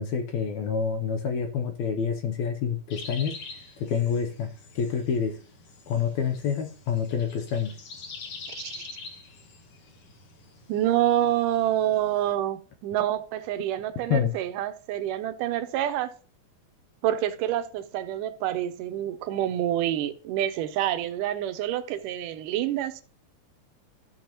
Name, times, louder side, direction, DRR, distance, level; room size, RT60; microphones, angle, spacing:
voice 1, 0.0-3.3 3.8-4.5 4.8-5.4 5.9-7.7 14.1-14.3, left 7 dB, 75° left, 1.9 m, -27 dB
sound 1, 2.9-12.3, left 4 dB, 55° left, 1.9 m, -45 dB
voice 2, 8.5-8.9 10.7-16.1 17.0-23.0, right 12 dB, 85° right, 2.3 m, -27 dB
13.5 x 6.1 x 3.0 m
omnidirectional pair, 3.7 m